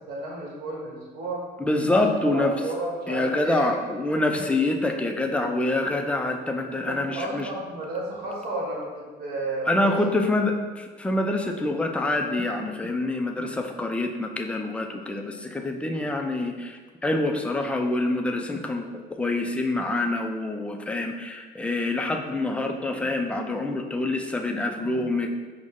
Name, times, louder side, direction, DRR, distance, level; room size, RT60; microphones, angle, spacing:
voice 1, 0.1-1.5 1.9-3.7 6.9-10.0, right 2 dB, 65° right, -2 dB, 1.3 m, -32 dB
voice 2, 1.6-2.5 3.1-7.5 9.7-18.9 19.1-25.3, left 2 dB, 5° left, 3 dB, 0.3 m, -26 dB
5.1 x 2.1 x 3.6 m, 1.4 s
cardioid pair, 110°, 17 cm